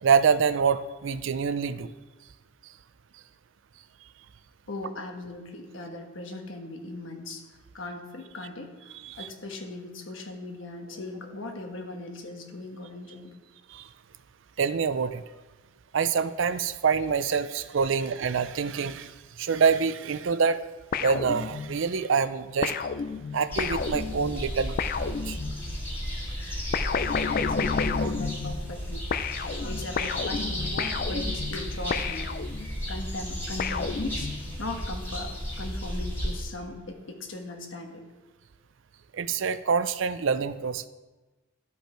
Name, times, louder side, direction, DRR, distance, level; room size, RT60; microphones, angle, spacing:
voice 1, 0.0-1.9 9.0-9.3 13.7-13.9 14.6-15.2 15.9-20.7 21.0-22.7 23.3-24.8 25.0-25.4 39.1-40.9, right 6 dB, 70° right, 14 dB, 0.5 m, -26 dB
voice 2, 4.7-7.4 7.7-13.3 27.3-32.3 32.6-34.3 34.6-35.3 35.6-38.0, left 2 dB, 75° left, 3 dB, 1.3 m, -38 dB
sound 1, 20.9-21.9 22.6-25.8 26.7-28.8 29.1-32.9 33.6-34.6, left 5 dB, 45° left, 0.4 m, -31 dB
sound 2, 23.5-36.4, equal, 10° left, 2.1 m, -34 dB
12.0 x 5.6 x 4.4 m, 1.2 s
head